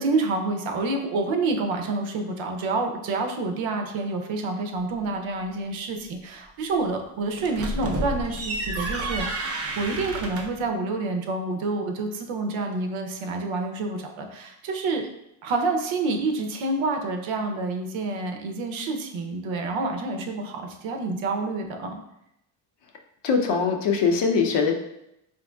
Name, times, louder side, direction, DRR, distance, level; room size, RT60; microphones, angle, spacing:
voice 1, 0.0-15.1 15.4-22.0, right 3 dB, 70° right, 4 dB, 0.7 m, -28 dB
sound 1, 7.4-10.6, right 2 dB, 30° right, 0.6 m, -30 dB
voice 2, 23.2-24.8, left 5 dB, 60° left, 3 dB, 0.7 m, -22 dB
3.8 x 2.9 x 2.2 m, 0.82 s
supercardioid pair, 70°, 48 cm